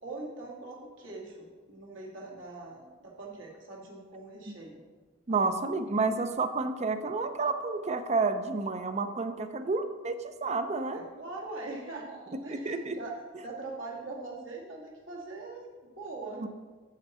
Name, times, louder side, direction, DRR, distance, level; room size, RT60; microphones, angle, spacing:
voice 1, 0.0-4.8 5.3-5.4 5.9-6.0 10.9-16.4, right 2 dB, 70° right, -3 dB, 2.1 m, -42 dB
voice 2, 5.3-11.0 12.5-13.0 16.4-16.5, right 3 dB, 35° right, 9 dB, 0.6 m, -30 dB
8.8 x 7.1 x 4.3 m, 1.4 s
head